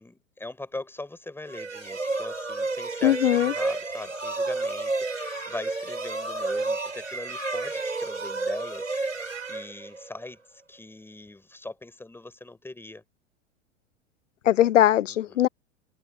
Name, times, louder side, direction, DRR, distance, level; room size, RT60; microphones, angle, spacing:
voice 1, 0.0-13.0 15.0-15.5, left 2 dB, 5° left, 5.1 m, -41 dB
sound 1, 1.5-10.2, right 3 dB, 90° right, 4.8 m, -31 dB
voice 2, 3.0-3.5 14.5-15.5, left 12 dB, 75° left, 0.5 m, -20 dB
figure-of-eight pair, 95°, 37 cm